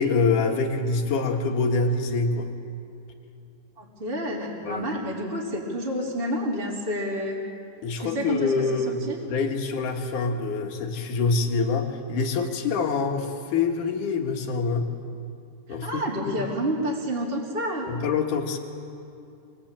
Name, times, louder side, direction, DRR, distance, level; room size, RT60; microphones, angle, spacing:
voice 1, 0.0-2.5 4.7-4.8 7.8-9.0 9.3-14.9 15.7-16.4 17.9-18.6, left 4 dB, 55° left, 3 dB, 2.8 m, -25 dB
voice 2, 3.8-7.4 8.0-9.2 15.7-17.9, equal, 15° right, -3 dB, 2.8 m, -29 dB
26.0 x 21.5 x 8.9 m, 2.6 s
omnidirectional pair, 5.0 m